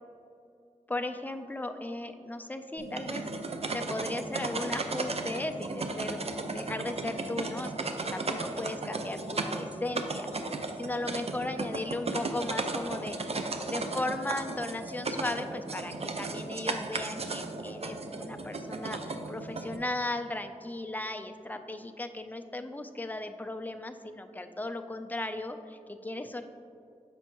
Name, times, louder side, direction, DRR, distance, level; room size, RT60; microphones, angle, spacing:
voice 1, 0.9-3.2 3.7-10.3 10.8-13.2 13.7-26.4, left 2 dB, 15° left, 7 dB, 0.4 m, -36 dB
sound 1, 2.8-19.8, right 3 dB, 50° right, 0.4 m, -35 dB
7.0 x 5.3 x 2.9 m, 2.6 s
wide cardioid pair, 60°, 13 cm